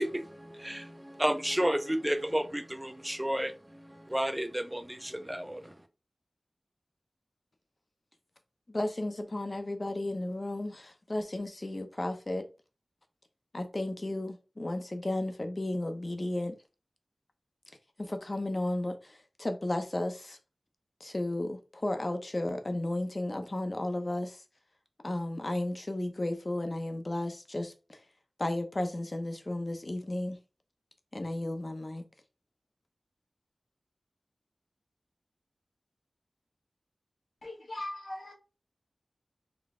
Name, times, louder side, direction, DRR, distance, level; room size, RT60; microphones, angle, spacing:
voice 1, 0.0-5.7, equal, 15° right, 0.5 m, -32 dB
voice 2, 8.7-12.5 13.5-16.6 18.0-20.4 21.0-24.4 25.0-28.0 28.4-30.4 31.1-32.0, left 1 dB, 40° left, 0.7 m, -34 dB
voice 3, 37.4-38.3, left 1 dB, 80° left, 1.4 m, -39 dB
3.9 x 2.2 x 3.6 m
wide cardioid pair, 50°, 0 cm